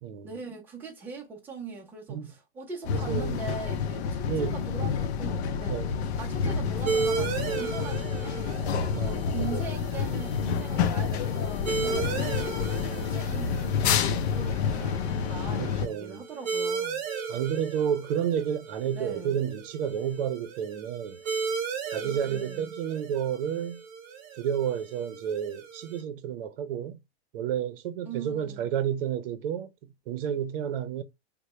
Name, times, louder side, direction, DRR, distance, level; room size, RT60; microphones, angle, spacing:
voice 1, 0.2-5.8 6.2-9.0 9.3-17.0 18.9-19.4 22.0-22.8 28.1-28.7, right 5 dB, 5° right, 0.4 m, -41 dB
sound 1, 2.8-15.9, left 7 dB, 70° left, 0.5 m, -29 dB
voice 2, 2.9-3.4 4.3-4.6 5.7-6.0 8.9-9.6 15.5-16.2 17.3-21.2 21.9-23.8 24.4-27.0 27.3-31.0, right 9 dB, 55° right, 0.6 m, -31 dB
sound 2, 6.9-26.0, right 5 dB, 25° right, 0.8 m, -36 dB
3.2 x 2.1 x 2.9 m
supercardioid pair, 160°, 33 cm